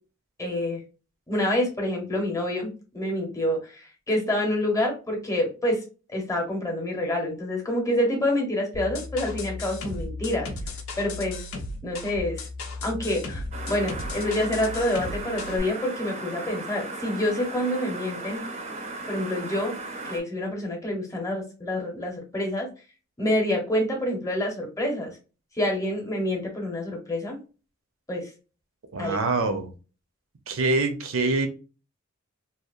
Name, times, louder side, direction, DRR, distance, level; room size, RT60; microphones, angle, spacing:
voice 1, 0.4-0.8 1.3-5.8 6.1-10.5 11.0-11.4 11.8-12.4 12.8-18.5 19.1-19.8 20.1-22.7 23.2-25.1 25.6-27.4 28.1-28.3 29.0-29.2, left 1 dB, 15° left, 1 dB, 0.8 m, -27 dB
sound 1, 8.7-15.6, left 2 dB, 85° left, 0.6 m, -35 dB
sound 2, 13.5-20.2, right 2 dB, 30° right, 0.5 m, -36 dB
voice 2, 28.9-29.7 30.5-31.5, right 3 dB, 75° right, 7 dB, 0.6 m, -24 dB
2.7 x 2.0 x 2.4 m, 0.34 s
head